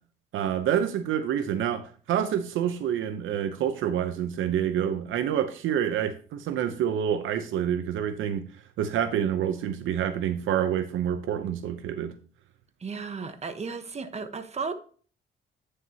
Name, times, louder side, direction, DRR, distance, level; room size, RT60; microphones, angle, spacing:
voice 1, 0.3-8.5 8.8-12.1, right 9 dB, 85° right, 0.8 m, -27 dB
voice 2, 12.8-14.7, right 5 dB, 35° right, 1.2 m, -34 dB
9.0 x 6.5 x 2.9 m
cardioid pair, 90°, 20 cm